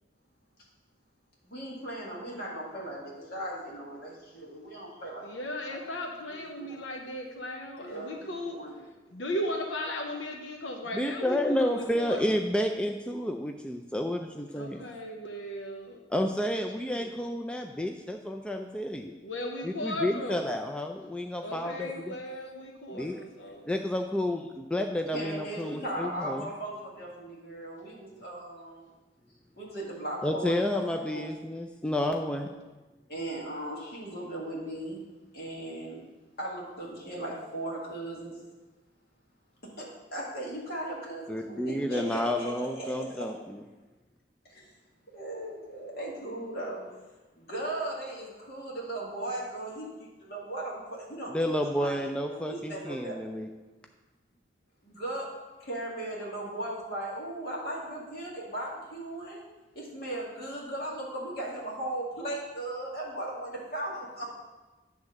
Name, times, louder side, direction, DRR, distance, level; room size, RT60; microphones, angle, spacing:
voice 1, 1.4-5.3 5.7-5.8 6.3-6.8 7.8-9.0 25.1-28.9 29.5-31.2 33.1-35.0 35.3-36.0 36.4-38.4 39.6-43.3 44.5-44.7 45.1-46.8 47.4-53.2 54.8-55.3 55.6-59.5 59.7-64.3, right 1 dB, 55° left, -5 dB, 2.3 m, -37 dB
voice 2, 5.2-8.6 9.1-12.4 14.6-16.0 16.4-17.1 19.2-20.5 21.4-23.7 46.3-46.8, left 1 dB, 90° left, 2 dB, 0.8 m, -37 dB
voice 3, 10.9-14.9 16.1-19.1 19.6-22.1 22.9-23.2 23.7-26.5 30.2-32.5 41.3-43.6 51.3-53.5, left 1 dB, 5° left, 3 dB, 0.3 m, -30 dB
9.6 x 3.6 x 6.5 m, 1.2 s
head